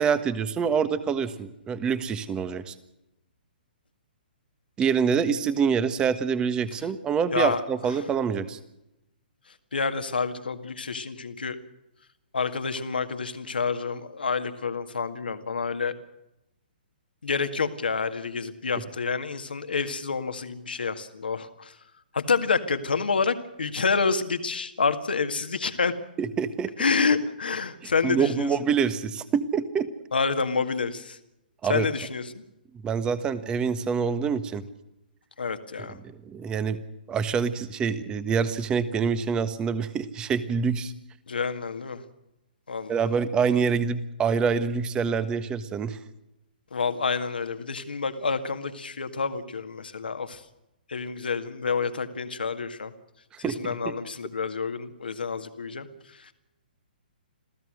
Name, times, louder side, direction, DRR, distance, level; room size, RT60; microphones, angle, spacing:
voice 1, 0.0-2.7 4.8-8.6 26.2-26.7 27.8-29.9 31.6-31.9 32.8-34.6 35.8-35.9 36.2-36.8 37.1-40.9 42.9-46.0 53.4-53.9, right 6 dB, 15° right, 13 dB, 1.4 m, -26 dB
voice 2, 9.7-11.6 12.3-15.9 17.2-21.7 22.1-26.0 26.8-28.5 30.1-31.2 31.7-32.4 35.4-36.0 41.3-42.0 42.7-43.0 46.7-50.4 50.9-52.9 53.4-55.9 56.1-56.3, left 5 dB, 75° left, 9 dB, 2.0 m, -28 dB
27.0 x 16.0 x 6.5 m, 0.89 s
figure-of-eight pair, 130°, 5 cm